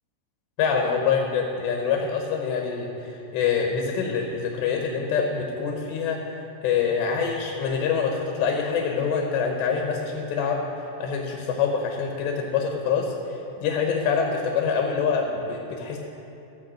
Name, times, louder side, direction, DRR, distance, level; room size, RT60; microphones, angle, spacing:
voice 1, 0.6-6.2 6.6-10.6 11.0-16.0, left 6 dB, 80° left, 1 dB, 3.2 m, -25 dB
14.5 x 5.8 x 7.4 m, 2.8 s
omnidirectional pair, 5.1 m